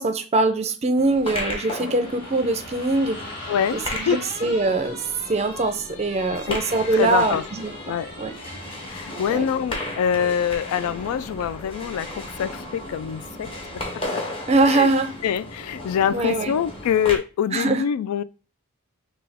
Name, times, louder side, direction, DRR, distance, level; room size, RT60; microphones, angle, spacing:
voice 1, 0.0-3.2 3.7-5.0 5.3-8.3 9.3-9.5 14.5-15.1 16.1-16.6 17.5-17.8, right 2 dB, 30° right, 0.5 m, -22 dB
sound 1, 1.0-17.2, left 1 dB, 25° left, 0.9 m, -35 dB
sound 2, 2.0-9.0, left 2 dB, 50° left, 1.3 m, -40 dB
voice 2, 3.5-4.2 6.5-6.6 6.9-7.4 7.9-8.1 8.9-13.8 14.1-14.2 14.7-14.9 15.2-18.2, left 8 dB, 85° left, 0.3 m, -25 dB
5.7 x 2.3 x 3.4 m
head